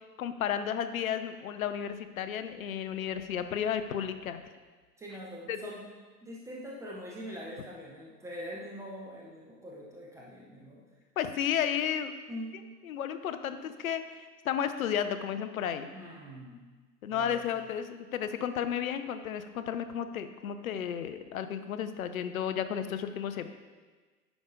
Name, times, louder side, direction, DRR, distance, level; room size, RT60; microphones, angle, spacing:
voice 1, 0.2-4.4 5.5-5.7 11.2-12.2 12.8-15.9 17.0-23.5, left 9 dB, 60° left, 10 dB, 0.7 m, -33 dB
voice 2, 5.0-5.8 6.2-10.8 12.3-12.5 15.9-16.7 17.1-17.6, equal, 5° right, -4 dB, 0.4 m, -43 dB
9.5 x 5.3 x 3.8 m, 1.4 s
figure-of-eight pair, 95°, 47 cm